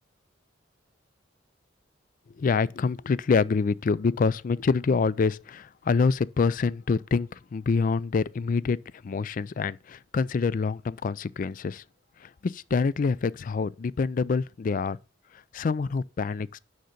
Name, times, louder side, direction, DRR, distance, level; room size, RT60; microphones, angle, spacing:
voice 1, 2.4-8.8 9.0-11.8 12.2-15.0 15.3-16.6, left 4 dB, 45° left, 0.3 m, -26 dB
6.5 x 5.7 x 6.6 m
head